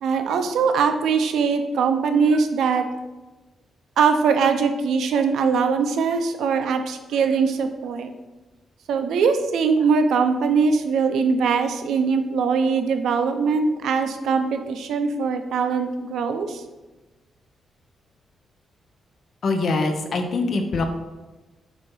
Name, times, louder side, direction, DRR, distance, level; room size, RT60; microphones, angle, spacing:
voice 1, 0.0-2.8 4.0-8.1 8.9-16.6, right 5 dB, 85° right, 7 dB, 0.6 m, -21 dB
voice 2, 19.4-20.8, left 3 dB, 45° left, 5 dB, 0.7 m, -23 dB
7.2 x 2.8 x 5.4 m, 1.1 s
wide cardioid pair, 175°, 0 cm